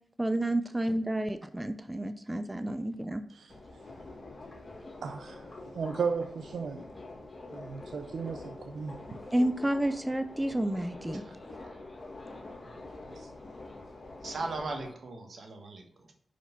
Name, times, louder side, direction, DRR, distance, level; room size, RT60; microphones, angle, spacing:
voice 1, 0.2-3.2 9.3-11.2, right 1 dB, 15° right, 10 dB, 0.6 m, -30 dB
Subway metro underground, 3.5-14.9, left 2 dB, 35° left, 1.8 m, -46 dB
voice 2, 5.0-5.4 5.7-6.8 7.5-8.9 13.2-13.3, right 5 dB, 80° right, 6 dB, 0.6 m, -35 dB
voice 3, 14.2-16.1, right 3 dB, 65° right, 3 dB, 1.6 m, -38 dB
5.6 x 5.1 x 5.4 m, 0.63 s
cardioid pair, 55°, 0 cm